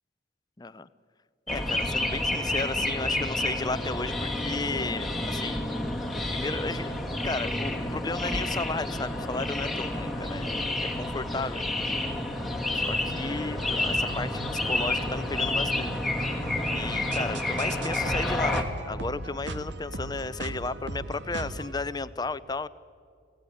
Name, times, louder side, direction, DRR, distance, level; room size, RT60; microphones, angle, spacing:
voice 1, 0.6-0.9 1.5-5.7 6.3-6.9 7.2-12.1 12.7-15.9 16.7-22.7, left 3 dB, 20° left, 16 dB, 0.6 m, -34 dB
sound 1, 1.5-18.6, left 1 dB, ahead, 2.2 m, -29 dB
sound 2, 13.2-21.7, right 2 dB, 70° right, 1.8 m, -39 dB
26.0 x 17.5 x 9.9 m, 2.2 s
head